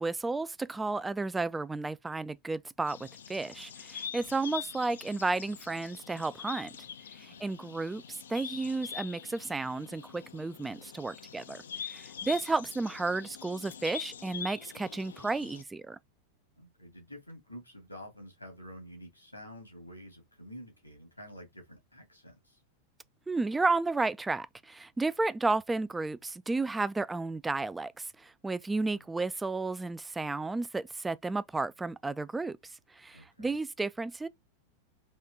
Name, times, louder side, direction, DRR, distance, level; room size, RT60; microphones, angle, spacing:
voice 1, 0.0-6.7 7.2-16.0 23.3-32.6 33.0-34.3, right 3 dB, 10° right, 0.3 m, -32 dB
sound 1, 2.9-15.6, left 8 dB, 65° left, 0.4 m, -44 dB
voice 2, 16.6-22.6 33.1-33.5, equal, 85° left, 2.0 m, -49 dB
4.2 x 3.1 x 3.6 m
figure-of-eight pair, 90°, 0 cm